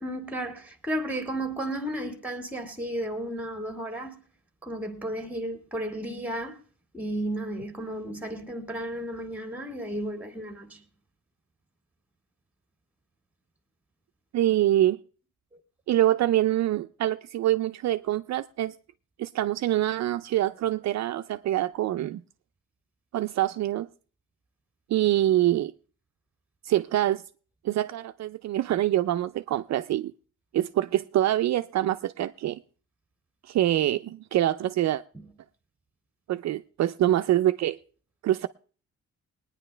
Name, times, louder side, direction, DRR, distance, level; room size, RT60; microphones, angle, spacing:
voice 1, 0.0-4.2 4.6-6.6 6.9-10.8 35.1-35.3, right 1 dB, 5° right, 1.8 m, -33 dB
voice 2, 14.3-15.0 15.9-18.7 19.2-22.2 23.1-23.9 24.9-25.7 26.6-27.2 27.6-30.1 30.5-32.6 33.5-35.0 36.3-37.8 38.2-38.5, right 13 dB, 60° right, 0.5 m, -25 dB
21.0 x 9.8 x 3.3 m
cardioid pair, 130°, 30 cm